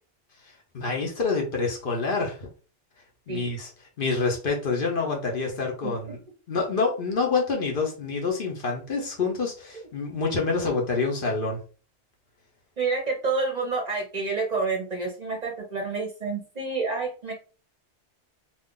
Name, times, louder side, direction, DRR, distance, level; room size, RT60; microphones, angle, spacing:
voice 1, 0.7-2.5 3.3-3.7 4.0-6.2 6.5-11.6, left 4 dB, 55° left, 0 dB, 0.9 m, -27 dB
voice 2, 12.8-17.3, right 4 dB, 45° right, 0 dB, 0.7 m, -28 dB
2.6 x 2.3 x 3.6 m, 0.37 s
omnidirectional pair, 1.2 m